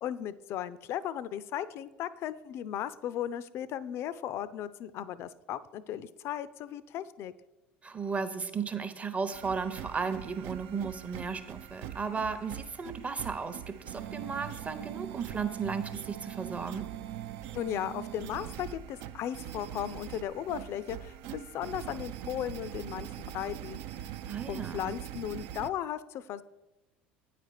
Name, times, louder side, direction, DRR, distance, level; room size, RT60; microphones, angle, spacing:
voice 1, 0.0-7.3 17.5-24.1 24.5-26.4, left 10 dB, 50° left, 16 dB, 0.4 m, -36 dB
voice 2, 7.8-16.9 24.3-24.8, right 5 dB, 25° right, 10 dB, 0.8 m, -35 dB
sound 1, 9.3-25.7, right 11 dB, 60° right, 0.4 m, -42 dB
8.8 x 5.0 x 4.7 m, 1.1 s
hypercardioid pair, 70°, 6 cm